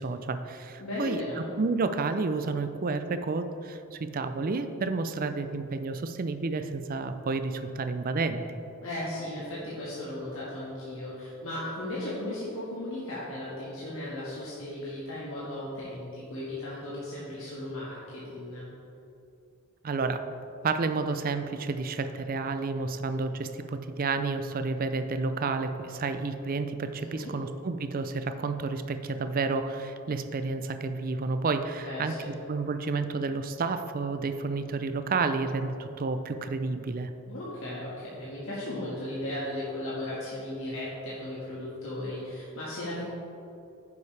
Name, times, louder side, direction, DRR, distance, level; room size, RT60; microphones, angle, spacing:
voice 1, 0.0-8.4 19.8-20.2 20.6-32.1 32.5-37.1, right 4 dB, 40° right, 9 dB, 0.4 m, -30 dB
voice 2, 0.8-1.4 8.8-18.6 27.0-27.3 31.8-32.3 37.3-43.1, left 1 dB, 65° left, -9 dB, 1.6 m, -36 dB
9.7 x 7.1 x 3.3 m, 2.7 s
head